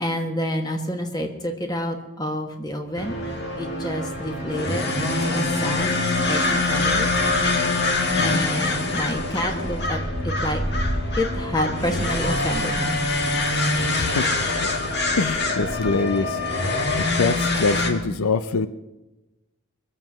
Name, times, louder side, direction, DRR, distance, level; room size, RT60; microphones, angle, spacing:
voice 1, 0.0-3.1 3.6-7.1 8.2-10.0 10.2-10.6 11.1-13.0, left 1 dB, 20° left, 5 dB, 1.5 m, -28 dB
sound 1, 3.0-17.9, left 2 dB, 50° left, 1.8 m, -24 dB
voice 2, 14.0-14.7 15.1-16.7 16.9-18.7, left 4 dB, 70° left, 13 dB, 0.6 m, -25 dB
23.0 x 7.7 x 6.2 m, 1.0 s
head